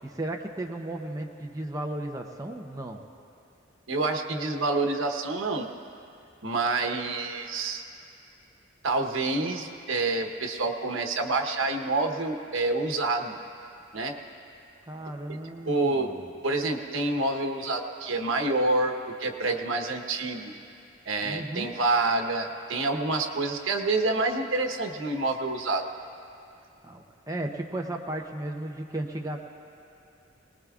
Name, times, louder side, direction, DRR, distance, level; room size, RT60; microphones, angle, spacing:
voice 1, 0.0-3.0 14.9-16.3 21.2-21.8 26.8-29.4, right 1 dB, 20° right, 1 dB, 0.7 m, -35 dB
voice 2, 3.9-5.7 6.4-7.8 8.8-13.4 13.9-14.2 15.6-16.1 16.4-20.5 21.1-25.8, right 2 dB, 90° right, 5 dB, 1.1 m, -27 dB
23.5 x 19.5 x 2.4 m, 2.6 s
head